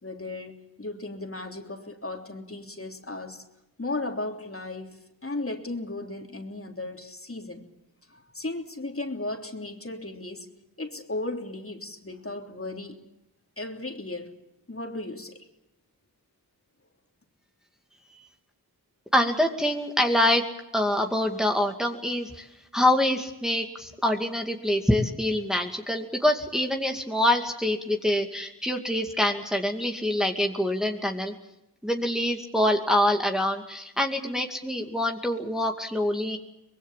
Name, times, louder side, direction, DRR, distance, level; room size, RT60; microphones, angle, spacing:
voice 1, 0.0-3.4 3.8-7.7 8.1-10.5 10.8-13.0 13.6-14.3 14.7-15.4, left 2 dB, 35° left, 3 dB, 3.3 m, -35 dB
voice 2, 19.1-20.4 20.7-22.5 22.7-31.3 31.8-36.4, left 1 dB, ahead, 2 dB, 2.3 m, -25 dB
24.0 x 21.5 x 7.4 m, 0.90 s
wide cardioid pair, 50°, 39 cm